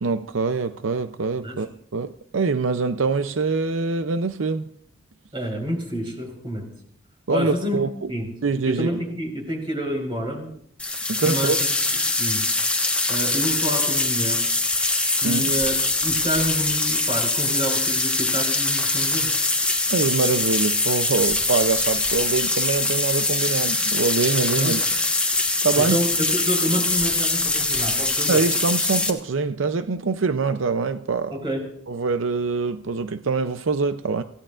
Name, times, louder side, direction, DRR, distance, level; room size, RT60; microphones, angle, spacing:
voice 1, 0.0-1.7 1.9-4.6 7.3-8.1 8.4-8.9 11.1-11.6 15.2-15.4 19.9-24.8 25.6-26.0 28.3-31.4 31.9-34.2, right 4 dB, 85° right, 0.6 m, -24 dB
voice 2, 5.3-6.7 7.3-7.8 8.1-8.3 8.6-10.5 11.2-11.6 12.2-12.4 13.1-14.5 15.2-15.8 16.0-19.3 24.6-24.8 25.7-28.4 31.3-31.7, equal, 25° right, 4.6 m, -28 dB
sound 1, 10.8-29.1, left 2 dB, 5° left, 1.3 m, -23 dB
26.5 x 16.5 x 2.5 m
head